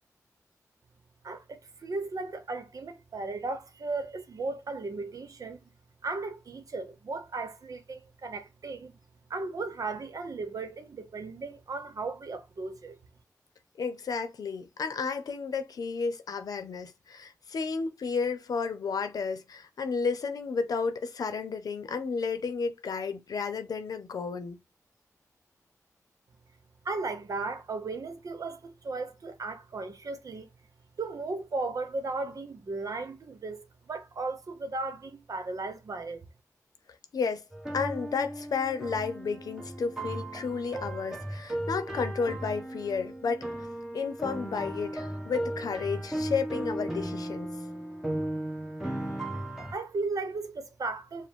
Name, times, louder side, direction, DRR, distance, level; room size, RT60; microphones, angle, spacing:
voice 1, 1.2-5.7 6.0-8.9 9.3-13.0 26.8-30.5 31.0-36.2 49.7-51.3, right 3 dB, 70° right, 0.9 m, -36 dB
voice 2, 13.8-24.6 37.1-37.4 37.7-43.7 43.9-47.5, left 5 dB, 85° left, 0.7 m, -32 dB
sound 1, 37.5-49.7, right 1 dB, 5° right, 1.3 m, -36 dB
5.0 x 2.2 x 3.6 m
cardioid pair, 70°, 6 cm